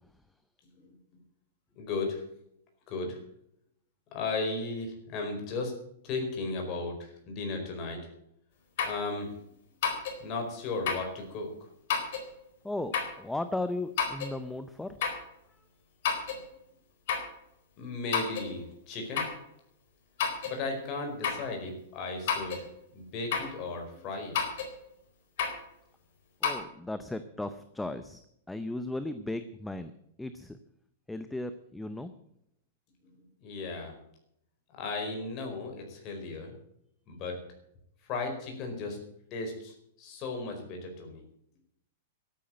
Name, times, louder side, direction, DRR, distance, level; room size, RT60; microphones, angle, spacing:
voice 1, 1.8-2.2 2.9-3.2 4.1-5.8 6.0-8.1 8.8-9.3 10.2-11.5 17.8-19.3 20.4-22.7 22.9-24.4 33.1-33.9 34.7-36.5 37.1-37.4 38.0-39.0 39.3-41.2, left 3 dB, 30° left, 3 dB, 4.6 m, -35 dB
sound 1, 8.8-9.0 9.8-10.2 10.9-11.1 11.9-12.3 12.9-13.2 14.0-14.3 15.0-15.3 16.0-16.4 17.1-17.3 18.1-18.5 19.1-19.4 20.2-20.6 21.2-21.5 22.3-22.7 23.3-23.6 24.3-24.7 25.4-25.6 26.4-26.6, left 6 dB, 55° left, 4.1 m, -30 dB
voice 2, 12.6-15.0 26.4-28.2 28.5-29.9 30.2-30.6 31.1-32.1, left 2 dB, 5° left, 11 dB, 0.6 m, -36 dB
13.0 x 9.3 x 8.8 m, 0.73 s
supercardioid pair, 160°, 0 cm